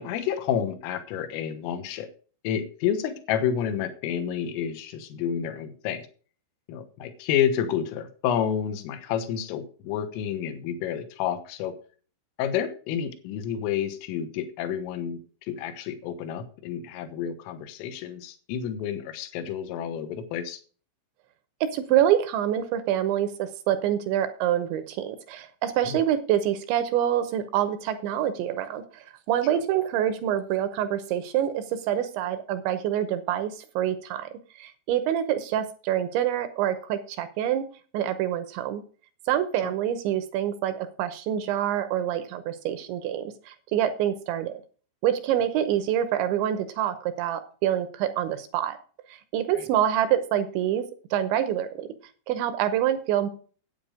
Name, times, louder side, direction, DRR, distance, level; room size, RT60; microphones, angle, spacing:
voice 1, 0.0-2.1 2.4-6.1 6.7-11.7 12.4-15.2 15.5-20.6 25.8-26.0 39.6-39.7 49.5-49.7, left 9 dB, 80° left, 9 dB, 3.8 m, -29 dB
voice 2, 21.6-34.3 34.6-37.7 37.9-38.8 39.3-44.5 45.0-48.8 49.1-50.8 51.1-51.9 52.3-53.3, right 11 dB, 75° right, 10 dB, 2.9 m, -26 dB
9.6 x 9.0 x 5.0 m, 0.39 s
omnidirectional pair, 5.9 m